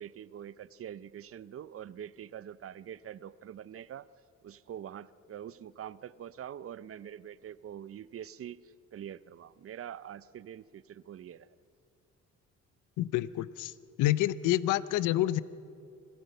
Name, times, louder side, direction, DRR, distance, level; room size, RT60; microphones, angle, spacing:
voice 1, 0.0-4.1 4.4-8.6 8.9-11.5, right 10 dB, 50° right, 18 dB, 0.6 m, -44 dB
voice 2, 13.0-13.7 14.0-15.4, left 15 dB, 85° left, 17 dB, 0.6 m, -28 dB
26.0 x 15.5 x 6.7 m, 2.6 s
cardioid pair, 90°, 30 cm